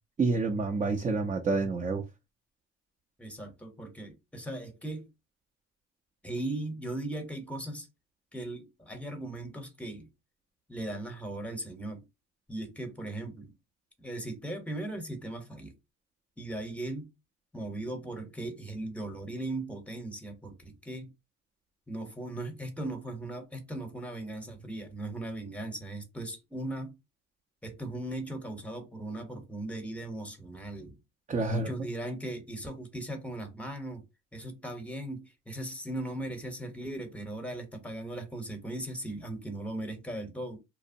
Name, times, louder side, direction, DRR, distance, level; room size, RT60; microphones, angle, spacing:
voice 1, 0.2-2.0 31.3-31.7, right 3 dB, 25° right, 0.5 m, -28 dB
voice 2, 3.2-5.1 6.2-7.9 8.3-10.1 10.7-12.0 12.5-13.5 14.0-15.7 16.4-17.1 17.5-21.1 21.9-27.0 27.6-31.0 31.5-34.0 34.3-40.6, right 1 dB, 5° left, 0.8 m, -38 dB
2.8 x 2.0 x 2.6 m
cardioid pair, 90°, 30 cm